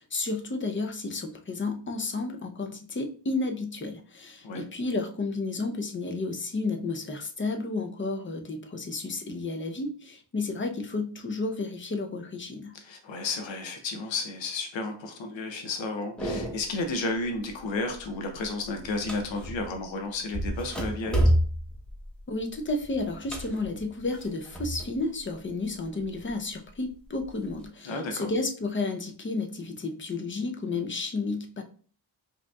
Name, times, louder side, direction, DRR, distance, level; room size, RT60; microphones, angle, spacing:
voice 1, 0.0-12.7 22.3-31.6, left 3 dB, 25° left, 5 dB, 0.6 m, -32 dB
voice 2, 12.8-21.3 27.8-28.3, left 3 dB, 80° left, 4 dB, 0.7 m, -32 dB
sound 1, 16.2-16.8 17.2-17.6 17.9-19.8 20.3-25.0 25.3-26.3 26.9-27.7, equal, ahead, 1.0 m, -30 dB
4.8 x 2.9 x 2.3 m, 0.43 s
wide cardioid pair, 85°, 45 cm